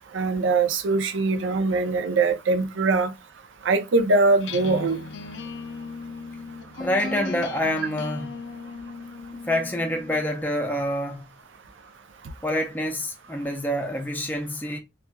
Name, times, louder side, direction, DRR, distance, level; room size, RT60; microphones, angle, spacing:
voice 1, 0.1-3.1 3.6-5.0, right 3 dB, 85° right, 0.6 m, -22 dB
sound 1, 4.4-10.3, left 4 dB, 70° left, 0.4 m, -37 dB
voice 2, 6.8-8.3 9.3-11.2 12.4-14.8, equal, 10° left, 0.4 m, -27 dB
4.1 x 2.3 x 2.2 m
head